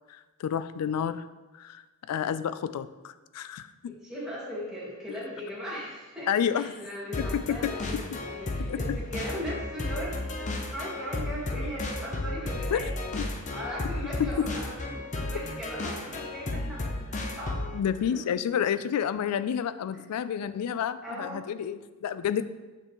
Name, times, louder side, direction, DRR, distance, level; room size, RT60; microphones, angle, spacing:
voice 1, 0.4-1.3 1.6-1.8 2.1-3.9 6.3-6.7 7.3-8.0 8.6-8.8 12.7-12.9 13.2-13.3 14.2-14.3 17.7-22.4, left 8 dB, 85° left, 15 dB, 0.3 m, -29 dB
voice 2, 4.0-17.7 18.1-18.2 19.9-20.0 21.0-21.4, equal, 5° right, -8 dB, 1.9 m, -38 dB
sound 1, 7.1-17.8, left 2 dB, 35° left, 0.5 m, -34 dB
6.6 x 5.3 x 3.0 m, 1.2 s
head